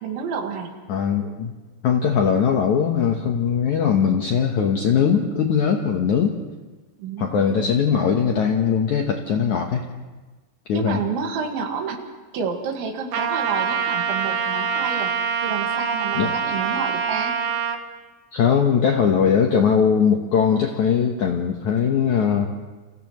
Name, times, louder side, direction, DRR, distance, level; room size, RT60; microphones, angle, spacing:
voice 1, 0.0-0.7 7.0-7.5 10.7-12.0 12.3-15.1 15.4-17.3, right 6 dB, 80° right, 3 dB, 4.2 m, -29 dB
voice 2, 0.9-1.5 1.8-6.4 7.2-9.8 10.7-11.0 16.1-16.3 18.3-22.5, left 7 dB, 75° left, 2 dB, 1.8 m, -20 dB
Trumpet, 13.1-17.8, right 6 dB, 65° right, 2.7 m, -25 dB
29.5 x 29.5 x 3.1 m, 1.3 s
omnidirectional pair, 5.2 m